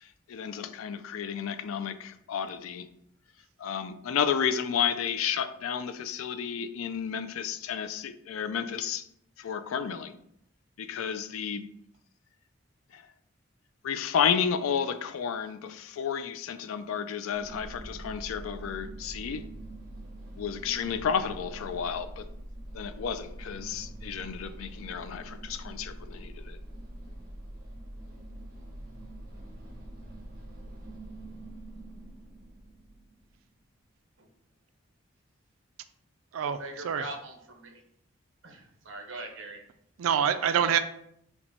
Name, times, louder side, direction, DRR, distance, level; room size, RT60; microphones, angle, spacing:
voice 1, 0.0-2.9 3.6-9.0 9.4-10.2 10.8-11.7 12.9-13.1 13.8-19.4 20.4-22.3 22.7-26.6, left 7 dB, 85° left, 11 dB, 0.4 m, -32 dB
sound 1, 17.3-33.2, right 1 dB, 45° right, 1.1 m, -44 dB
voice 2, 36.4-37.8 38.4-39.6, right 2 dB, 65° right, 4 dB, 0.9 m, -41 dB
voice 3, 40.0-40.8, right 8 dB, 85° right, 10 dB, 0.4 m, -25 dB
5.7 x 2.2 x 4.1 m, 0.72 s
head